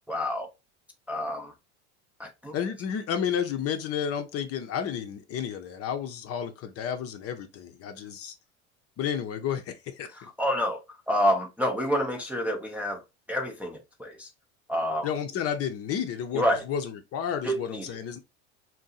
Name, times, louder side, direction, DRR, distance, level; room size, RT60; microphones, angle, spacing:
voice 1, 0.1-0.5 1.1-1.5 2.2-2.6 10.1-13.0 13.3-14.3 14.7-15.1 16.3-16.6 17.4-18.0, equal, 5° right, 0.5 m, -28 dB
voice 2, 2.5-8.3 9.0-10.1 15.0-18.2, left 8 dB, 40° left, 0.6 m, -31 dB
2.6 x 2.2 x 4.0 m
supercardioid pair, 100°, 35 cm